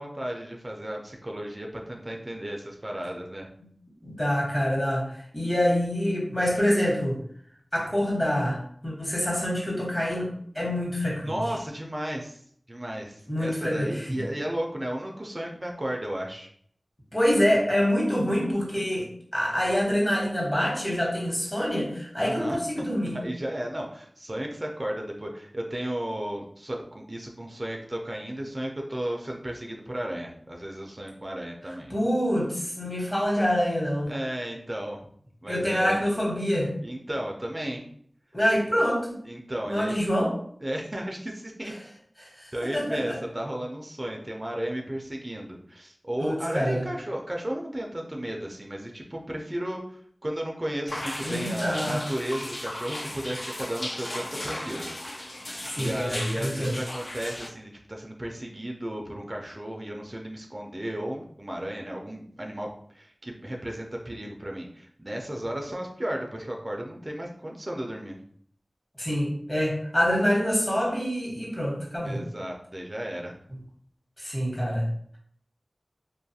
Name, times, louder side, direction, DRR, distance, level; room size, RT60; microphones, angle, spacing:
voice 1, 0.0-3.5 11.2-12.4 12.7-16.5 22.2-22.6 23.1-31.9 34.1-35.0 35.4-36.0 36.8-37.8 39.3-39.9 40.6-41.7 42.5-54.9 55.8-68.2 72.0-73.4, right 1 dB, 35° right, 0 dB, 0.4 m, -34 dB
voice 2, 4.0-7.2 7.7-10.3 10.5-11.3 13.3-14.1 17.1-23.2 31.9-34.1 35.5-36.7 38.3-39.2 39.6-40.3 42.2-43.2 46.2-46.9 51.2-52.0 55.6-56.8 69.0-72.2 74.2-74.9, equal, 30° left, -3 dB, 1.1 m, -26 dB
sound 1, 50.9-57.5, left 1 dB, 60° left, 0.4 m, -36 dB
2.5 x 2.3 x 2.7 m, 0.62 s
wide cardioid pair, 50°, 0 cm